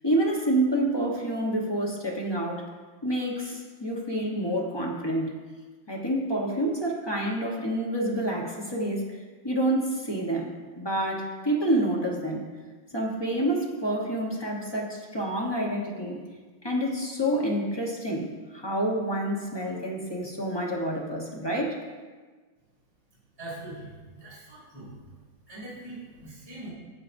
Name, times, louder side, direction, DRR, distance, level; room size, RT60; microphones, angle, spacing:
voice 1, 0.0-2.7 3.0-5.3 5.9-9.1 9.4-10.5 10.8-12.4 12.9-16.2 16.6-18.3 18.5-21.8, right 1 dB, 20° left, -3 dB, 0.7 m, -28 dB
voice 2, 23.4-24.9 25.5-26.7, right 2 dB, 10° right, -9 dB, 3.0 m, -42 dB
12.0 x 8.0 x 2.6 m, 1.4 s
omnidirectional pair, 2.1 m